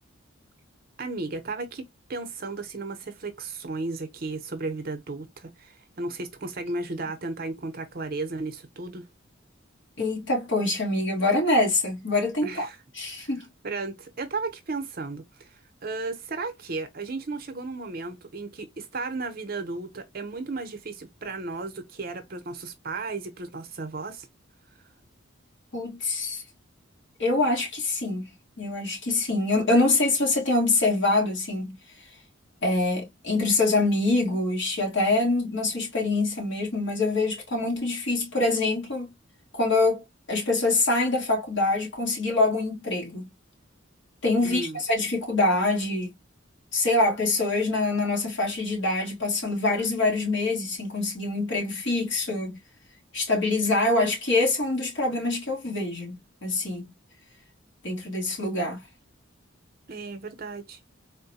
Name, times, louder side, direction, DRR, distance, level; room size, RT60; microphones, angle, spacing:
voice 1, 1.0-9.1 12.4-12.8 13.6-24.3 44.4-44.8 59.9-60.8, right 3 dB, 50° right, 0.7 m, -34 dB
voice 2, 10.0-12.7 13.0-13.5 25.7-26.4 27.2-28.3 28.6-31.8 32.6-39.1 39.5-40.0 40.3-43.3 44.2-46.1 46.7-52.6 53.1-56.8 57.8-58.8, left 2 dB, 65° left, 1.5 m, -25 dB
3.8 x 2.1 x 2.7 m
head